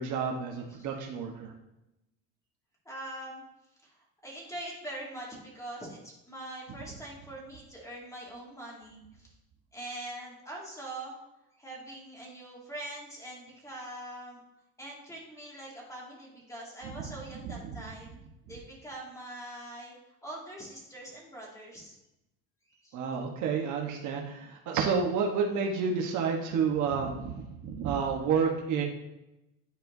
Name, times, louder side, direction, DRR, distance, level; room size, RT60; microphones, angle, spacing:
voice 1, 0.0-1.5 17.4-17.7 22.9-28.8, right 6 dB, 60° right, 1 dB, 1.1 m, -30 dB
voice 2, 2.9-3.4 3.8-9.3 9.7-11.2 11.5-14.4 14.8-18.2 18.5-20.0 20.2-22.0 22.7-23.0, right 1 dB, 10° left, -3 dB, 2.1 m, -43 dB
10.0 x 4.4 x 2.7 m, 0.91 s
cardioid pair, 115°, 33 cm